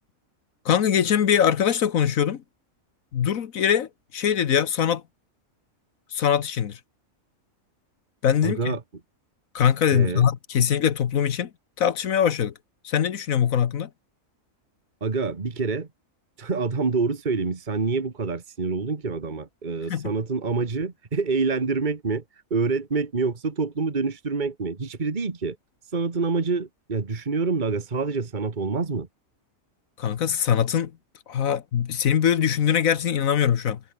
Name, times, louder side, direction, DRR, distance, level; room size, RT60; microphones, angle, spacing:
voice 1, 0.6-2.4 3.1-5.0 6.1-6.8 8.2-8.7 9.5-11.5 11.8-12.5 12.8-13.9 19.9-20.1 30.0-30.9 31.3-33.8, left 8 dB, 80° left, 1.5 m, -22 dB
voice 2, 8.4-8.8 9.9-10.3 15.0-15.9 16.4-22.2 22.5-25.6 25.9-29.1, right 4 dB, 35° right, 1.8 m, -26 dB
omnidirectional pair, 1.4 m